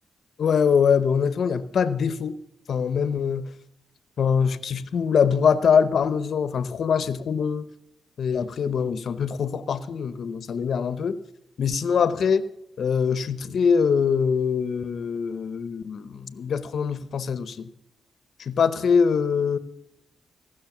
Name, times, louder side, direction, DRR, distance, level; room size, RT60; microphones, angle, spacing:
voice 1, 0.4-2.4 2.7-3.5 4.2-7.7 8.2-11.2 11.6-12.5 12.8-17.7 18.4-19.6, left 6 dB, 65° left, 0.8 m, -23 dB
17.5 x 6.3 x 7.2 m
cardioid pair, 80°, 0 cm